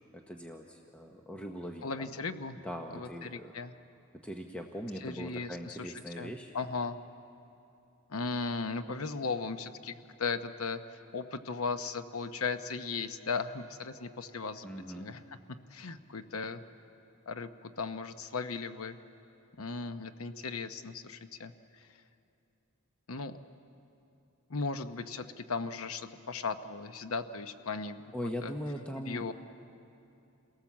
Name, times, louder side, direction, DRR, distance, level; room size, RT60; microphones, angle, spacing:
voice 1, 0.1-2.2 2.6-3.5 4.2-6.5 14.6-15.1 28.1-29.3, equal, 5° left, 2 dB, 1.0 m, -40 dB
voice 2, 1.8-2.6 2.9-3.7 5.0-5.9 6.2-7.0 8.1-10.8 11.1-14.7 14.9-15.2 15.7-16.6 17.3-19.0 19.6-21.9 23.1-23.4 24.5-28.0 28.4-28.5 29.0-29.3, left 4 dB, 70° left, 9 dB, 0.9 m, -37 dB
28.0 x 18.0 x 7.3 m, 2.7 s
head